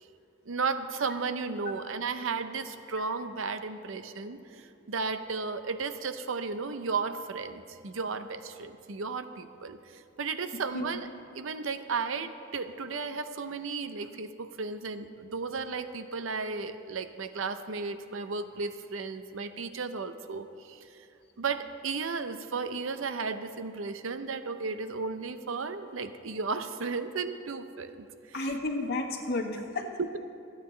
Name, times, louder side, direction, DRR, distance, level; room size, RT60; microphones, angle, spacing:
voice 1, 0.5-11.1 11.3-20.8 21.4-28.6 30.0-30.2, right 4 dB, 80° right, 10 dB, 0.7 m, -34 dB
voice 2, 28.3-29.9, left 2 dB, 55° left, 2 dB, 1.5 m, -32 dB
26.0 x 9.0 x 3.3 m, 2.7 s
head